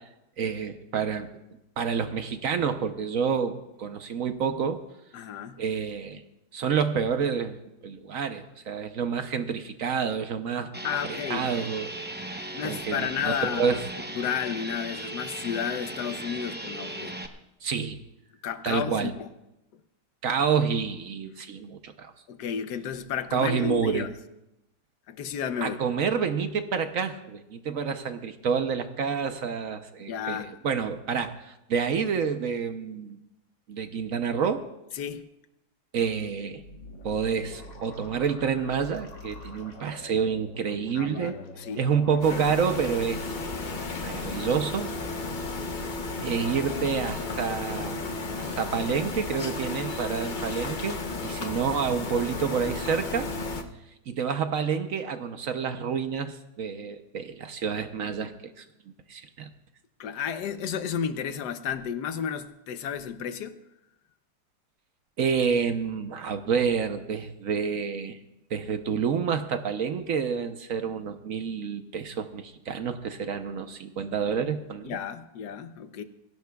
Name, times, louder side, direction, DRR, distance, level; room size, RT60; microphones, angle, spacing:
voice 1, 0.4-1.3 1.8-4.8 5.6-6.2 6.5-7.6 7.8-11.9 12.6-13.8 17.6-18.0 18.6-19.1 20.2-22.1 23.3-24.1 25.6-33.2 33.7-34.7 35.9-36.6 37.0-41.4 41.8-43.4 44.0-44.9 46.2-48.1 48.4-53.3 54.1-58.6 59.1-59.5 65.2-68.2 68.5-75.0, right 6 dB, 60° right, 8 dB, 1.0 m, -28 dB
voice 2, 5.1-5.6 10.8-11.5 12.5-13.8 14.1-17.1 18.4-19.3 22.3-24.1 25.1-25.8 30.1-30.5 34.9-35.3 40.9-41.8 60.0-63.6 74.8-76.0, left 8 dB, 70° left, 10 dB, 1.3 m, -32 dB
sound 1, 10.7-17.3, right 1 dB, 15° right, 0.3 m, -37 dB
sound 2, 36.5-44.7, left 2 dB, 90° left, 2.5 m, -46 dB
sound 3, 42.2-53.6, left 3 dB, 40° left, 0.7 m, -33 dB
22.0 x 16.5 x 2.3 m, 0.90 s
omnidirectional pair, 1.9 m